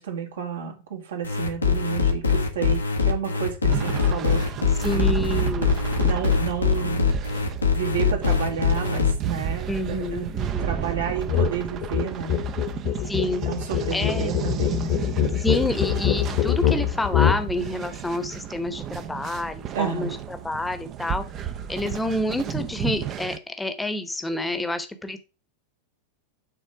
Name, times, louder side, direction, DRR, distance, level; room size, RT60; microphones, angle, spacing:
voice 1, 0.0-4.7 4.9-5.1 6.0-7.1 7.7-10.3 10.6-12.5 13.4-15.0 19.7-20.2, right 7 dB, 65° right, 1.9 m, -31 dB
sound 1, 1.2-9.1, left 5 dB, 80° left, 1.4 m, -22 dB
sound 2, 3.7-23.4, right 9 dB, 30° right, 0.8 m, -33 dB
voice 2, 4.8-5.8 6.8-6.9 9.7-10.7 13.1-13.4 13.9-14.4 15.4-25.2, left 1 dB, 5° left, 1.1 m, -28 dB
sound 3, 11.3-11.5 11.8-17.4, left 10 dB, 45° left, 1.3 m, -23 dB
9.2 x 4.2 x 4.9 m
figure-of-eight pair, 90°, 0 cm